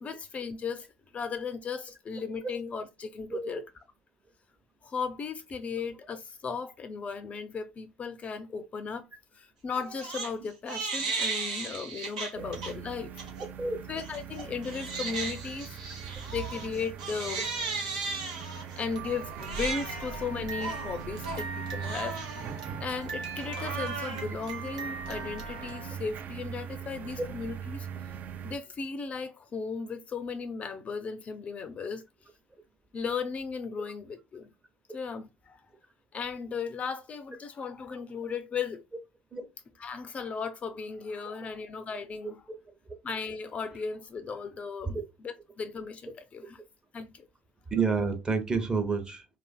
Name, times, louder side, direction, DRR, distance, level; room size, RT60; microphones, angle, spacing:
voice 1, 0.0-0.9 1.1-3.6 4.8-9.0 9.3-13.1 13.9-15.8 16.3-17.5 18.8-27.9 28.4-32.0 32.9-34.5 34.9-35.6 36.1-38.8 39.8-42.4 43.0-45.0 45.2-46.6 46.9-47.3, left 5 dB, 35° left, 0.3 m, -36 dB
Crying sobbing, 9.7-10.3 10.7-12.7 13.2-13.5 14.0-25.9, right 4 dB, 90° right, 0.7 m, -36 dB
sound 1, 12.4-28.6, right 7 dB, 50° right, 0.3 m, -41 dB
voice 2, 47.7-49.3, right 4 dB, 20° right, 0.7 m, -29 dB
2.6 x 2.5 x 2.3 m
hypercardioid pair, 70°, 4 cm